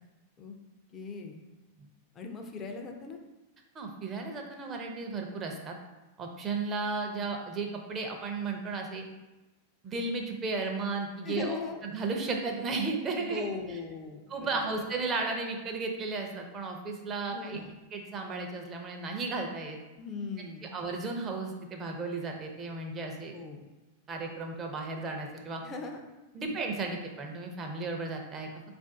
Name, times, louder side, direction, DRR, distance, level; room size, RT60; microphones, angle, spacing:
voice 1, 0.9-1.4 2.1-3.2 11.2-11.8 13.2-14.2 14.5-14.9 17.3-17.8 20.0-20.7 23.3-23.6 25.6-26.0 26.4-26.6, left 4 dB, 30° left, 3 dB, 0.5 m, -39 dB
voice 2, 3.7-5.7 6.2-9.1 9.8-11.6 11.8-13.5 14.3-17.6 17.9-19.8 20.7-23.3 24.1-25.6 26.3-28.5, right 3 dB, 30° right, 2 dB, 0.7 m, -34 dB
3.8 x 2.6 x 3.7 m, 1.1 s
hypercardioid pair, 105°, 0 cm